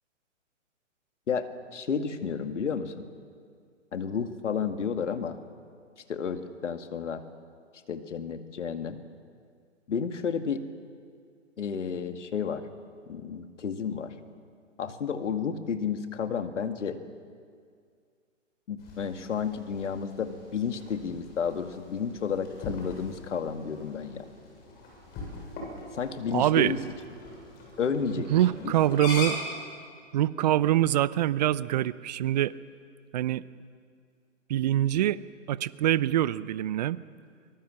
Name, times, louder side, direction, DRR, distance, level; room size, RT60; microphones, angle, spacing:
voice 1, 1.3-2.9 3.9-5.4 6.1-7.2 7.9-9.0 9.9-10.6 11.6-12.6 13.1-14.1 14.8-17.0 18.7-24.2 25.9-26.8 27.8-28.3 28.6-28.7, left 6 dB, 70° left, 7 dB, 2.2 m, -31 dB
sound 1, 18.8-29.4, left 3 dB, 25° left, 7.9 m, -42 dB
voice 2, 26.3-26.7 28.3-29.4 30.1-32.5 33.1-33.4 34.5-35.2 35.5-37.0, right 13 dB, 35° right, 19 dB, 0.6 m, -24 dB
24.0 x 22.0 x 7.6 m, 2.1 s
figure-of-eight pair, 130°, 38 cm